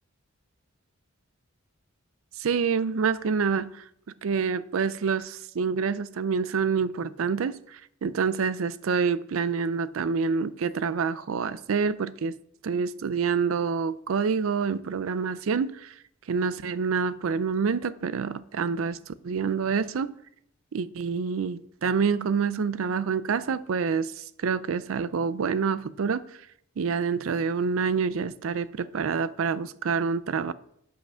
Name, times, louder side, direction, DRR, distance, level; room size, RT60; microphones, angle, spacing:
voice 1, 2.4-3.8 4.2-12.4 12.6-15.9 16.3-20.1 20.7-26.2 26.8-30.5, right 5 dB, 80° right, 16 dB, 0.4 m, -27 dB
8.7 x 5.7 x 5.5 m, 0.71 s
head